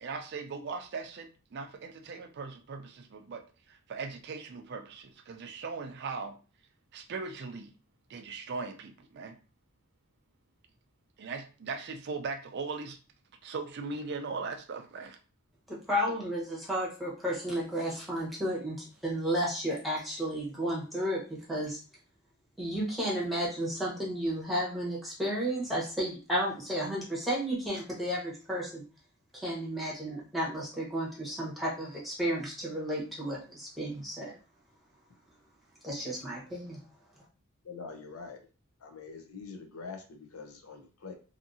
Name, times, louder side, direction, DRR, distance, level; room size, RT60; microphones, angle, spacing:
voice 1, 0.0-6.4 6.9-7.7 8.1-9.3 11.2-13.0 13.4-15.2, right 4 dB, 50° right, 6 dB, 0.4 m, -39 dB
voice 2, 15.7-21.2 21.5-21.8 22.6-28.8 29.3-34.3 35.8-36.8, equal, ahead, -5 dB, 1.0 m, -32 dB
voice 3, 37.6-38.4 38.8-41.2, left 4 dB, 75° left, 4 dB, 0.6 m, -44 dB
2.8 x 2.6 x 2.6 m, 0.36 s
head